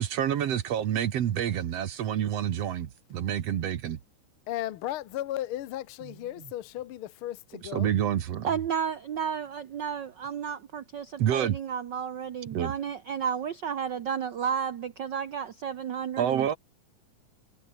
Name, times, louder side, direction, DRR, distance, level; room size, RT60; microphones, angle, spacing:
voice 1, 0.0-4.0 7.7-8.5 11.2-11.6 12.5-12.7 16.2-16.6, right 10 dB, 60° right, 2.2 m, -28 dB
voice 2, 4.5-7.9, left 13 dB, 70° left, 1.3 m, -35 dB
voice 3, 8.4-16.5, right 7 dB, 85° right, 0.9 m, -32 dB
omnidirectional pair, 3.5 m